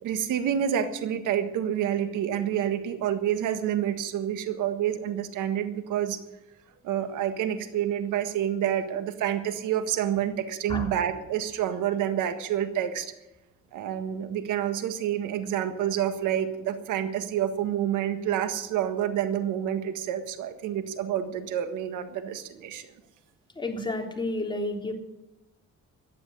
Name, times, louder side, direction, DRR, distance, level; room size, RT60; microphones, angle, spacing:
voice 1, 0.0-6.2 6.8-13.1 13.7-22.9, right 10 dB, 90° right, 9 dB, 1.6 m, -28 dB
voice 2, 23.6-24.9, left 2 dB, 15° left, 1 dB, 3.4 m, -30 dB
15.0 x 10.0 x 8.0 m, 0.94 s
cardioid pair, 90°, 30 cm